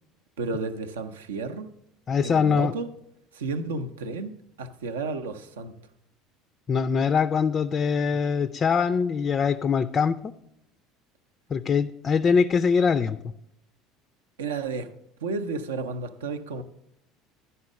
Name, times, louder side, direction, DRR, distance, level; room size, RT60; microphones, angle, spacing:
voice 1, 0.4-1.7 2.2-2.9 3.3-4.3 4.6-5.7 14.4-14.9 15.2-16.6, right 4 dB, 70° right, 0.6 m, -32 dB
voice 2, 2.1-2.7 6.7-10.3 11.5-13.2, left 6 dB, 30° left, 0.3 m, -23 dB
11.0 x 5.5 x 6.2 m
figure-of-eight pair, 65°, 0 cm